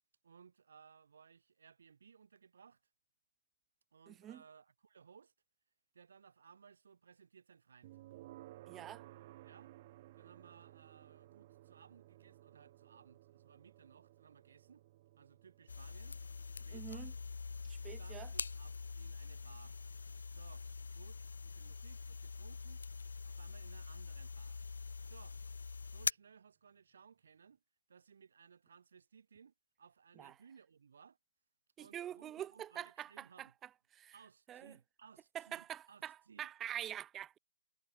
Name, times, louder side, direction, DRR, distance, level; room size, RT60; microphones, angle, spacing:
voice 1, 0.2-2.8 3.9-5.3 5.9-8.0 9.4-9.7 10.1-14.9 15.2-16.2 16.7-17.1 17.8-19.8 20.3-20.7 20.9-22.8 23.2-24.6 25.0-25.4 25.8-27.6 27.9-31.2 31.8-33.5 34.1-36.5, right 6 dB, 60° right, 5.1 m, -61 dB
voice 2, 4.1-4.4 8.7-9.0 16.7-17.1 17.6-18.3 30.2-30.3 31.8-33.5 34.0-34.1 34.5-34.7 35.3-37.4, right 10 dB, 10° right, 0.4 m, -45 dB
sound 1, 7.8-22.8, right 16 dB, 30° right, 3.3 m, -60 dB
sound 2, 15.7-26.1, left 4 dB, 80° left, 0.4 m, -44 dB
hypercardioid pair, 160°, 0 cm